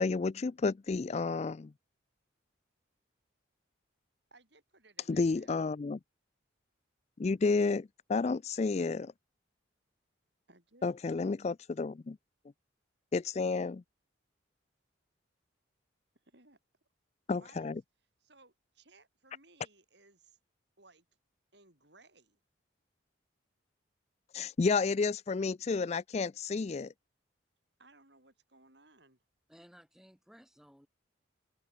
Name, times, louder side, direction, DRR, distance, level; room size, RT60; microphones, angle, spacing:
voice 1, 0.0-1.7 5.1-6.0 7.2-9.1 10.8-12.2 13.1-13.8 17.3-17.8 24.3-26.9, left 4 dB, 35° left, 0.3 m, -31 dB
voice 2, 4.3-5.6 10.5-10.9 16.2-16.6 17.3-17.8 18.2-20.4 20.8-21.1 21.5-22.4 27.8-29.2, right 2 dB, 55° right, 6.9 m, -62 dB
voice 3, 29.5-30.9, equal, ahead, 4.6 m, -58 dB
head